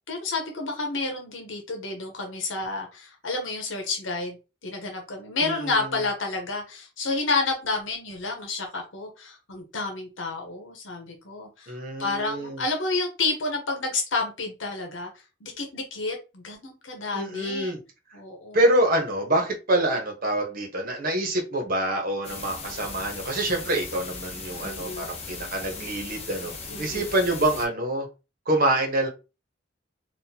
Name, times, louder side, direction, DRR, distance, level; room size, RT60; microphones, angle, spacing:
voice 1, 0.1-4.4 4.6-15.1 15.4-17.7 18.1-18.6 24.6-25.1 26.7-27.1, left 3 dB, 75° left, 3 dB, 0.9 m, -30 dB
voice 2, 5.4-6.0 11.7-12.6 17.1-17.8 18.5-26.5 26.8-28.1 28.5-29.1, right 1 dB, 45° right, 2 dB, 1.1 m, -26 dB
sound 1, 22.2-27.7, left 4 dB, 30° left, 0.7 m, -38 dB
4.2 x 2.5 x 2.8 m, 0.29 s
head